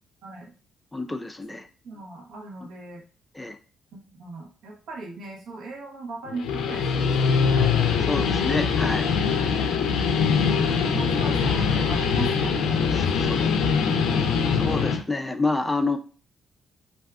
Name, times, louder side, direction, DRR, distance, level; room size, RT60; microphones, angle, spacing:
voice 1, 0.2-0.5 1.8-3.0 3.9-7.7 10.5-14.1, right 3 dB, 80° right, -1 dB, 1.0 m, -38 dB
voice 2, 0.9-1.7 3.3-3.6 8.0-9.1 12.9-13.3 14.5-16.0, left 3 dB, 10° left, 7 dB, 0.3 m, -28 dB
Guitar, 6.3-15.0, left 6 dB, 85° left, 0.4 m, -23 dB
2.6 x 2.3 x 3.5 m, 0.39 s
cardioid pair, 90°, 0 cm